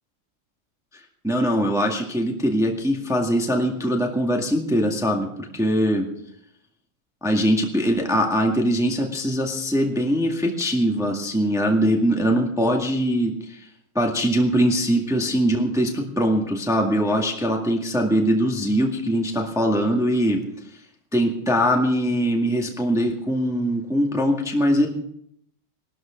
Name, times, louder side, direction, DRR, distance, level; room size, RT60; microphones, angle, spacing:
voice 1, 1.2-6.1 7.2-13.7 14.0-20.4 21.1-24.9, equal, ahead, 1 dB, 1.8 m, -22 dB
19.5 x 13.0 x 5.1 m, 0.73 s
omnidirectional pair, 2.3 m